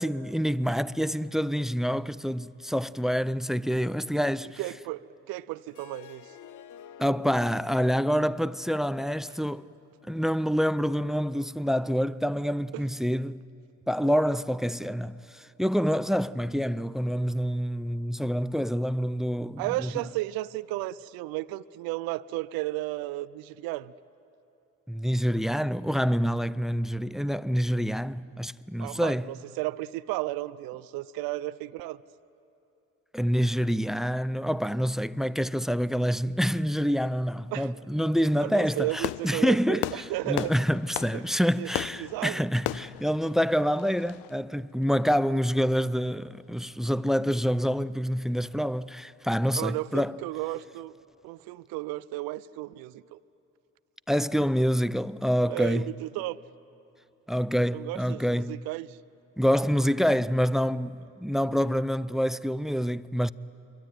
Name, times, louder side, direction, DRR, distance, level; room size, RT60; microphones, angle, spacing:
voice 1, 0.0-4.6 7.0-9.7 10.1-13.4 13.9-19.9 24.9-29.3 33.1-50.2 54.1-55.9 57.3-58.7 59.4-63.3, equal, ahead, 0.6 m, -27 dB
voice 2, 4.6-5.0 5.3-6.3 12.7-12.8 19.6-23.9 28.8-32.0 37.5-37.7 38.4-40.5 41.1-41.2 41.6-41.7 42.0-42.4 49.6-50.9 51.2-53.2 55.5-56.4 57.7-59.0, right 18 dB, 75° right, 0.6 m, -33 dB
Harp, 5.7-10.8, left 8 dB, 55° left, 0.9 m, -52 dB
Fireworks, 38.7-44.3, left 17 dB, 80° left, 0.5 m, -36 dB
26.0 x 23.0 x 9.3 m
hypercardioid pair, 50°, 36 cm